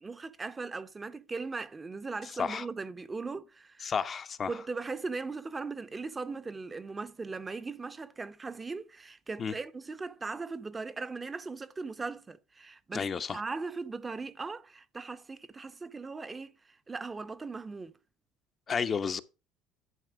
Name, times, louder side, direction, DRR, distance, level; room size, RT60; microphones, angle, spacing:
voice 1, 0.0-3.9 4.5-17.9, right 4 dB, 25° right, 0.8 m, -39 dB
voice 2, 3.8-4.5 9.4-9.5 12.9-13.4 18.7-19.2, left 6 dB, 35° left, 0.7 m, -31 dB
11.0 x 4.3 x 4.9 m
supercardioid pair, 80°, 0 cm